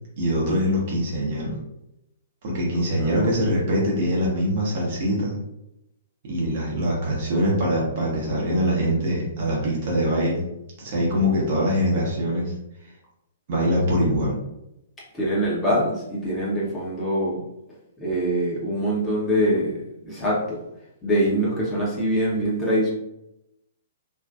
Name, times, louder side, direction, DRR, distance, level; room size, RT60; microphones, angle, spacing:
voice 1, 0.2-1.5 2.4-5.3 6.2-10.4 10.8-12.5 13.5-14.3, equal, 45° right, -3 dB, 0.9 m, -23 dB
voice 2, 2.7-3.3 15.1-17.4 18.0-20.6 21.0-22.9, equal, 10° left, -7 dB, 0.9 m, -24 dB
2.6 x 2.3 x 2.3 m, 0.85 s
figure-of-eight pair, 115°, 0 cm